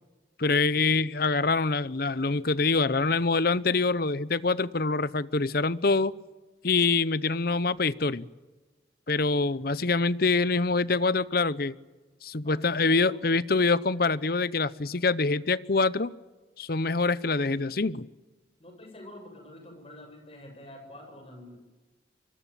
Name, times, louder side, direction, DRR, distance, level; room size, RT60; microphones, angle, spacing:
voice 1, 0.4-6.1 6.6-8.3 9.1-11.7 12.2-16.1 16.6-18.1, left 3 dB, 55° left, 18 dB, 0.8 m, -25 dB
voice 2, 12.4-13.2 18.6-21.6, left 1 dB, 30° left, 5 dB, 7.7 m, -47 dB
25.0 x 24.5 x 8.6 m, 1.2 s
head